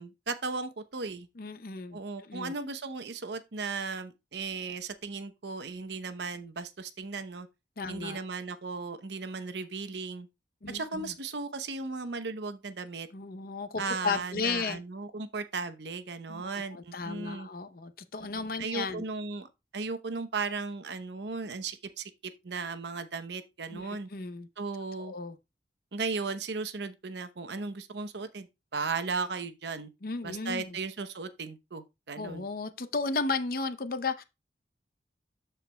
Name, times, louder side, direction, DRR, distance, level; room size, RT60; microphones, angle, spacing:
voice 1, 0.0-1.3 1.9-7.5 7.9-10.3 10.7-13.1 13.8-17.5 18.3-24.1 24.6-25.1 25.9-29.9 30.2-32.5, right 4 dB, 75° right, 0.8 m, -36 dB
voice 2, 1.4-2.6 7.8-8.2 10.6-11.1 13.1-14.8 16.3-19.1 23.7-24.5 25.0-25.4 30.0-30.8 32.2-34.2, left 4 dB, 55° left, 0.7 m, -34 dB
13.0 x 4.5 x 2.2 m
head